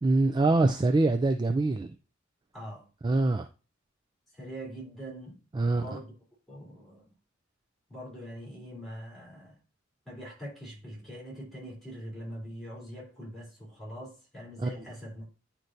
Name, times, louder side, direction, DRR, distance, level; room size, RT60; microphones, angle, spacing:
voice 1, 0.0-1.9 3.0-3.5 5.5-5.8 14.6-14.7, right 2 dB, 20° right, 0.3 m, -24 dB
voice 2, 2.5-2.9 4.3-6.1 6.5-7.1 7.9-9.6 10.0-15.3, equal, ahead, 3.2 m, -43 dB
9.6 x 4.4 x 2.6 m
head